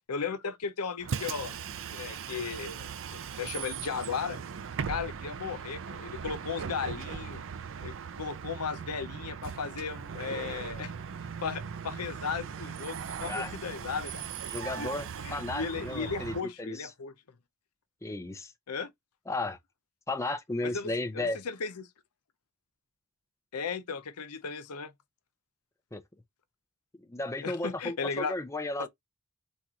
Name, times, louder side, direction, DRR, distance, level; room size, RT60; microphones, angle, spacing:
voice 1, 0.1-1.5 1.9-4.4 4.9-7.4 7.8-10.9 11.4-14.2 14.8-14.9 15.2-17.1 18.7-18.9 20.6-21.9 23.5-24.9 27.4-28.3 28.8-28.9, left 5 dB, 80° left, 0.7 m, -36 dB
Bus, 1.0-16.4, right 7 dB, 60° right, 0.5 m, -39 dB
voice 2, 14.5-16.8 18.0-18.5 19.3-19.6 20.1-21.4 25.9-26.0 27.1-28.9, left 2 dB, 15° left, 0.5 m, -34 dB
4.1 x 2.5 x 4.6 m
head